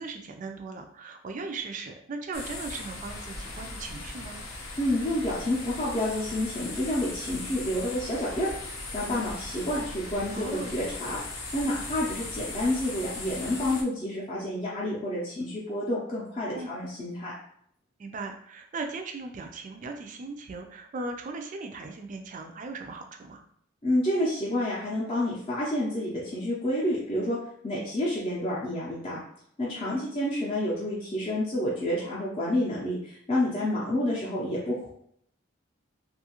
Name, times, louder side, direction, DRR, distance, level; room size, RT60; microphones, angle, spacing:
voice 1, 0.0-4.4 10.3-10.8 16.5-16.8 18.0-23.5 29.7-30.1, right 3 dB, 40° right, 5 dB, 0.3 m, -38 dB
sound 1, 2.3-13.8, left 2 dB, 85° left, 0.7 m, -38 dB
voice 2, 4.8-8.5 8.9-11.2 11.5-17.3 23.8-27.4 27.6-29.2 29.6-34.9, left 1 dB, 30° left, -7 dB, 0.5 m, -29 dB
2.6 x 2.4 x 2.9 m, 0.68 s
head